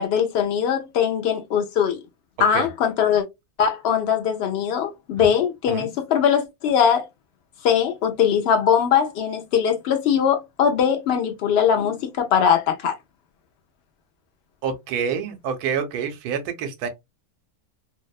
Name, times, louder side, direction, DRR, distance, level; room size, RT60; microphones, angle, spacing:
voice 1, 0.0-2.0 2.4-3.2 3.6-7.1 7.6-13.0, left 8 dB, 80° left, 0.5 m, -21 dB
voice 2, 14.6-16.9, right 7 dB, 85° right, 1.1 m, -27 dB
2.7 x 2.0 x 2.3 m
omnidirectional pair, 1.6 m